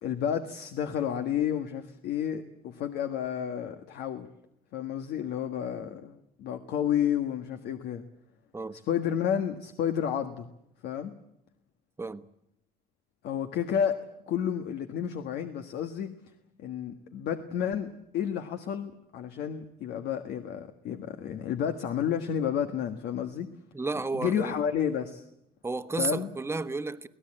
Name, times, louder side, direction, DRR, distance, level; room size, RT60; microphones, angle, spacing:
voice 1, 0.0-4.3 4.7-8.0 8.9-10.5 10.8-11.1 13.2-14.0 14.3-16.1 16.6-23.5 24.1-25.2 26.0-26.3, left 9 dB, 80° left, 1.6 m, -31 dB
voice 2, 23.7-24.5 25.6-27.1, right 3 dB, 15° right, 1.1 m, -32 dB
24.5 x 17.5 x 8.8 m
cardioid pair, 110°, 17 cm